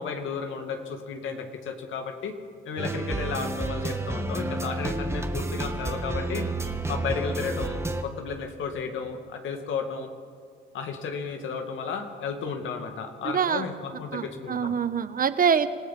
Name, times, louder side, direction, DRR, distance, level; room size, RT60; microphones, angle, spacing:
voice 1, 0.0-2.4 2.7-6.5 6.9-10.1 10.7-14.7, left 5 dB, 80° left, 4 dB, 2.4 m, -33 dB
sound 1, 2.8-8.0, right 2 dB, 15° right, 1.6 m, -30 dB
voice 2, 13.3-13.6 14.1-15.7, right 7 dB, 45° right, 12 dB, 1.2 m, -24 dB
27.0 x 16.5 x 6.1 m, 2.1 s
cardioid pair, 90°, 20 cm